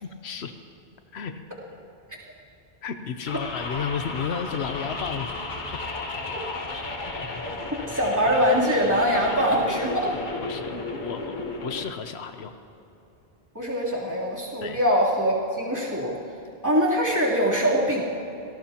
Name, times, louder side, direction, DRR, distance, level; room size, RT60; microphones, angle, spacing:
voice 1, 0.0-0.5 1.1-1.4 2.8-5.4 7.3-7.4 9.8-9.9 10.4-10.7 11.0-11.4 11.6-12.5 14.6-14.8, left 7 dB, 85° left, 8 dB, 1.0 m, -32 dB
sound 1, 3.3-11.8, left 2 dB, 50° left, 1.3 m, -33 dB
voice 2, 7.9-10.1 13.5-16.2 16.6-18.0, equal, 15° right, -6 dB, 3.2 m, -23 dB
26.5 x 17.5 x 2.9 m, 2.9 s
omnidirectional pair, 1.1 m